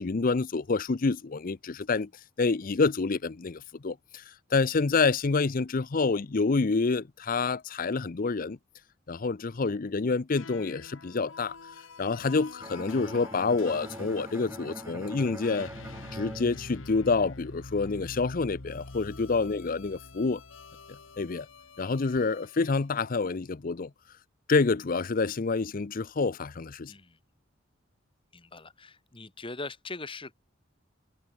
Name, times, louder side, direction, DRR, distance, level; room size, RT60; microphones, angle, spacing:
voice 1, 0.0-2.1 2.4-4.2 4.5-8.6 9.1-11.6 12.0-15.7 16.1-20.4 21.2-21.5 21.8-23.9 24.5-26.9, left 4 dB, 45° left, 0.6 m, -27 dB
sound 1, 10.3-22.9, left 3 dB, 85° left, 1.7 m, -46 dB
Bowed string instrument, 12.6-17.5, right 1 dB, 10° right, 4.6 m, -43 dB
voice 2, 26.9-27.2 28.3-30.3, left 3 dB, 25° left, 1.7 m, -42 dB
head